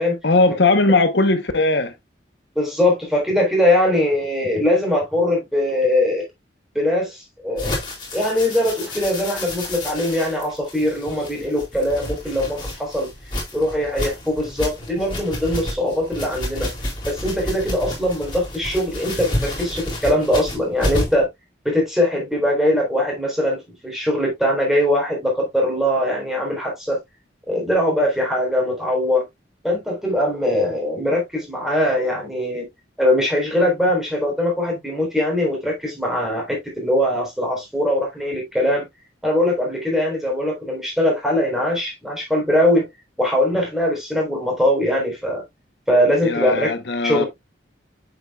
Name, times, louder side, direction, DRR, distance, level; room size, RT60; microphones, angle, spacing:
voice 1, 0.2-1.9 46.2-47.2, left 3 dB, 70° left, 0.9 m, -18 dB
voice 2, 2.6-6.3 6.7-7.8 8.1-13.1 13.5-16.7 17.1-21.3 21.6-27.0 27.5-29.2 29.6-32.7 33.0-38.9 39.2-42.9 43.2-45.4 45.9-46.7 47.0-47.3, left 1 dB, ahead, 3.7 m, -21 dB
sound 1, 7.6-21.2, left 1 dB, 25° left, 4.2 m, -30 dB
8.0 x 7.5 x 2.3 m
head